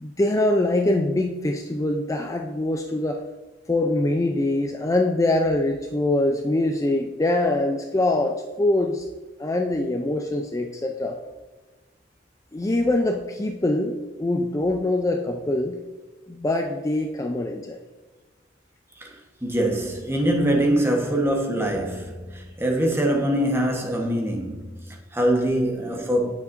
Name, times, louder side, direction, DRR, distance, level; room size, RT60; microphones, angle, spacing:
voice 1, 0.0-3.2 3.7-9.0 9.4-11.2 12.5-15.8 16.3-17.8, left 2 dB, 20° left, 0.4 m, -23 dB
voice 2, 19.0-26.3, right 1 dB, 15° right, 1.1 m, -24 dB
9.3 x 7.3 x 2.6 m
head